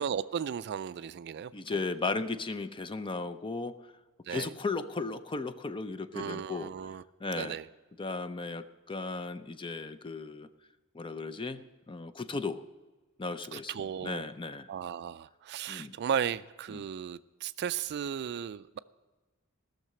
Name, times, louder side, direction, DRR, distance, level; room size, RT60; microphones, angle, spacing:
voice 1, 0.0-1.8 4.3-4.5 6.1-7.0 7.3-7.7 13.5-14.2 14.7-18.8, right 8 dB, 50° right, 15 dB, 0.3 m, -35 dB
voice 2, 1.5-3.8 4.3-6.7 7.2-7.6 8.0-10.5 10.9-11.6 11.9-12.6 13.2-13.7 14.0-14.7 15.7-15.9 16.7-16.8, left 3 dB, 25° left, 12 dB, 0.5 m, -35 dB
16.5 x 6.6 x 7.6 m, 1.2 s
head